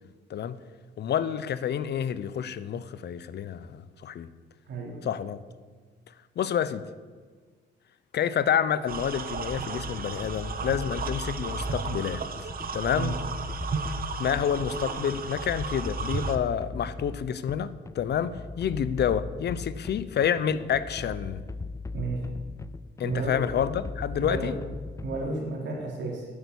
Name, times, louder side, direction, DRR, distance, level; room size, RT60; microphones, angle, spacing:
voice 1, 1.0-4.3 5.0-5.4 6.4-6.8 8.1-12.2 12.7-13.2 14.2-21.4 23.0-24.6, left 8 dB, 60° left, 15 dB, 0.7 m, -28 dB
voice 2, 4.7-5.0 12.9-13.1 21.9-22.2 23.0-23.4 24.2-24.5 25.0-26.3, right 3 dB, 65° right, -1 dB, 3.6 m, -32 dB
sound 1, 8.9-16.4, right 5 dB, 45° right, 1.0 m, -34 dB
sound 2, 9.5-25.4, left 3 dB, 15° left, 0.4 m, -39 dB
9.7 x 8.2 x 8.3 m, 1.5 s
cardioid pair, 90°, 20 cm